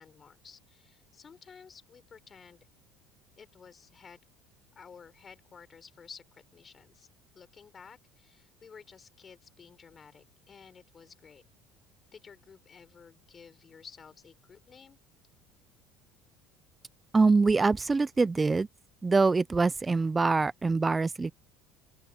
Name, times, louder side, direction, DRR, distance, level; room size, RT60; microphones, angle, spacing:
voice 1, 0.0-2.7 3.4-4.2 4.8-7.1 7.3-11.4 12.1-15.0, left 6 dB, 30° left, 4.0 m, -53 dB
voice 2, 17.1-18.7 19.0-21.3, right 4 dB, 15° right, 0.4 m, -24 dB
open air
supercardioid pair, 115°, 0 cm